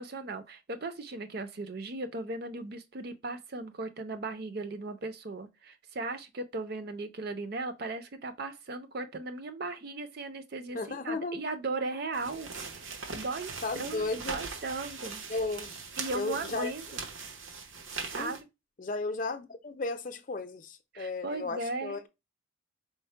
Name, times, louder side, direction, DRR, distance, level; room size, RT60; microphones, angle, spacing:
voice 1, 0.0-12.5 12.8-15.2 16.0-17.0 18.1-18.5 20.9-22.0, right 3 dB, 50° right, 0.5 m, -37 dB
voice 2, 10.7-11.4 13.6-14.4 15.3-15.7 16.1-16.7 18.2-18.3 18.8-22.1, left 3 dB, 40° left, 0.5 m, -34 dB
sound 1, 12.1-18.4, right 4 dB, 90° right, 1.0 m, -40 dB
4.5 x 2.1 x 4.4 m
head